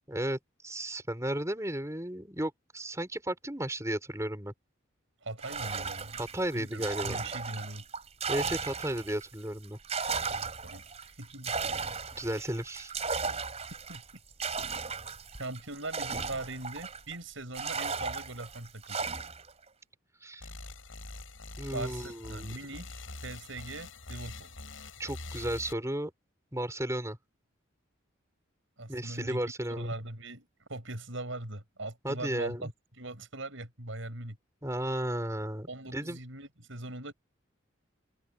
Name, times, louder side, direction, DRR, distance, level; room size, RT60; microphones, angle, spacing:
voice 1, 0.1-4.5 6.2-7.2 8.3-9.8 12.2-12.9 20.2-20.5 21.6-22.5 25.0-26.1 26.5-27.2 28.9-29.9 32.0-32.6 34.6-36.2, right 1 dB, 15° right, 5.6 m, -34 dB
voice 2, 5.2-6.2 6.5-7.9 10.4-11.6 13.9-14.0 15.4-19.0 21.7-24.5 28.8-29.4 29.7-32.7 33.0-34.4 35.7-37.1, right 2 dB, 70° right, 6.0 m, -41 dB
sound 1, 5.4-9.3 9.6-17.1 17.5-19.5, right 5 dB, 30° right, 4.4 m, -36 dB
sound 2, 20.4-25.7, left 2 dB, 75° left, 7.0 m, -44 dB
open air
head